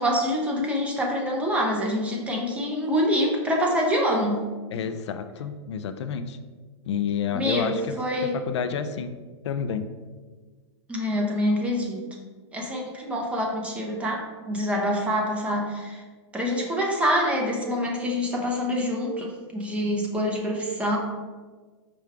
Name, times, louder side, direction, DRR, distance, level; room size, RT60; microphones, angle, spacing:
voice 1, 0.0-4.4 7.3-8.4 10.9-12.0 12.5-16.0 16.3-21.0, equal, 10° right, -1 dB, 0.6 m, -26 dB
voice 2, 4.7-6.4 6.9-9.1 9.4-9.9, left 7 dB, 75° left, 9 dB, 0.4 m, -30 dB
4.9 x 2.3 x 4.5 m, 1.4 s
hypercardioid pair, 145°, 15 cm